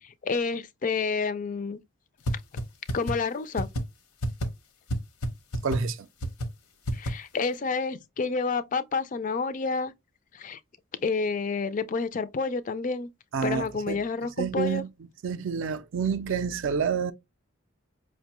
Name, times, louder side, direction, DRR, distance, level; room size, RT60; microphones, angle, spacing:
voice 1, 0.0-1.8 2.9-3.7 6.9-9.9 10.3-10.6 11.0-13.1 13.4-14.8, left 4 dB, 35° left, 0.3 m, -29 dB
sound 1, 2.3-2.4 2.6-2.7 2.9-3.1 3.6-3.8 4.2-4.5 4.9-5.0 5.2-5.3 5.5-5.8 6.2-6.5 6.9-7.1, equal, 80° left, 0.8 m, -27 dB
voice 2, 5.6-6.1 13.3-14.0 14.4-14.9 15.2-17.1, right 6 dB, 60° right, 0.4 m, -28 dB
5.3 x 2.2 x 2.9 m
head